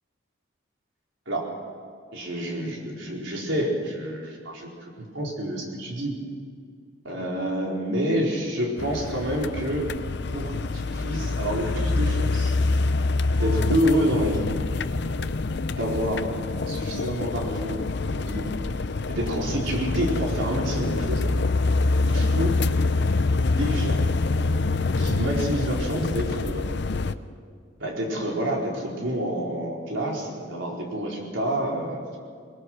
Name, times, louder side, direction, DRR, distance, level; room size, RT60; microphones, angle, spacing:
voice 1, 2.1-6.1 7.0-9.9 10.3-12.6 13.3-14.5 15.8-16.3 16.7-17.8 18.1-18.5 19.1-21.2 22.0-22.5 23.5-24.1 25.0-26.6 27.8-32.0, equal, 70° right, -1 dB, 4.4 m, -28 dB
sound 1, 8.8-27.1, left 3 dB, 55° left, 0.6 m, -25 dB
21.5 x 21.0 x 6.2 m, 2.2 s
head